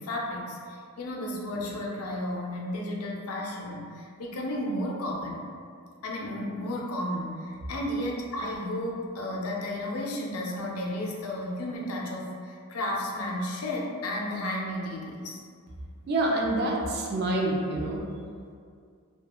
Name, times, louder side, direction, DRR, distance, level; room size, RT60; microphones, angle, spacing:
voice 1, 0.0-5.4 6.0-15.4, left 1 dB, 70° left, -1 dB, 0.4 m, -33 dB
voice 2, 16.1-18.0, right 1 dB, 50° right, -1 dB, 0.4 m, -27 dB
2.3 x 2.2 x 2.9 m, 2.2 s
head